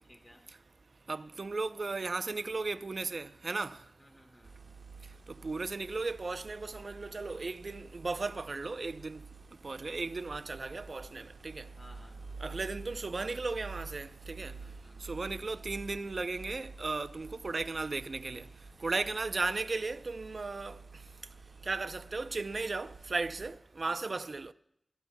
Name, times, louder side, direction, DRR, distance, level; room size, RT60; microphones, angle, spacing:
voice 1, 0.1-0.4 3.5-3.6 4.0-4.5 11.7-12.4 14.4-15.1 18.8-19.1 23.8-24.1, left 1 dB, 30° left, 4.8 m, -59 dB
voice 2, 1.1-3.8 5.3-9.2 9.6-11.7 12.4-14.6 15.0-18.5 18.8-20.8 21.6-24.5, right 3 dB, 65° right, 0.6 m, -36 dB
sound 1, 4.4-23.5, right 4 dB, 85° right, 1.7 m, -49 dB
27.5 x 13.0 x 2.3 m
cardioid pair, 45°, 0 cm